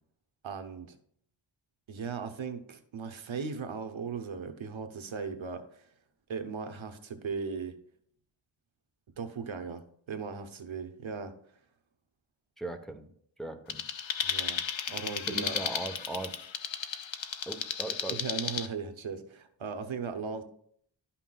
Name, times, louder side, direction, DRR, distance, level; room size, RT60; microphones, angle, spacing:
voice 1, 0.4-1.0 1.9-5.9 6.3-7.7 9.2-11.3 14.2-14.6 14.9-15.6 18.1-20.4, right 5 dB, 85° right, 8 dB, 0.9 m, -38 dB
voice 2, 12.6-13.1 13.4-13.8 15.3-16.4 17.5-18.2, right 2 dB, ahead, 5 dB, 0.8 m, -38 dB
sound 1, 13.7-18.7, left 7 dB, 75° left, 0.7 m, -34 dB
12.0 x 5.7 x 2.3 m, 0.63 s
wide cardioid pair, 75°, 46 cm